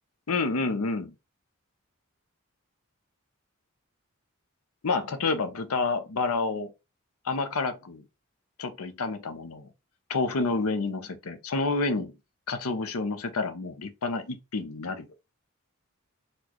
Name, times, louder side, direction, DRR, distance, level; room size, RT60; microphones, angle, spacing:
voice 1, 0.3-1.1 4.8-6.7 7.2-8.0 8.6-9.7 10.1-12.1 12.5-15.1, left 3 dB, 85° left, 0.6 m, -29 dB
4.2 x 2.3 x 2.9 m
head